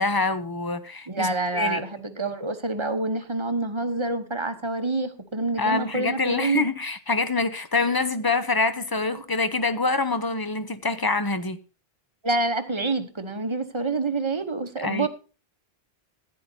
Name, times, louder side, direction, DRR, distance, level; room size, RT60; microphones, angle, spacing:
voice 1, 0.0-1.8 5.6-11.6 14.8-15.1, left 3 dB, 25° left, 0.7 m, -25 dB
voice 2, 1.1-6.6 12.2-15.1, right 3 dB, 30° right, 1.0 m, -27 dB
15.0 x 10.5 x 2.7 m
omnidirectional pair, 1.1 m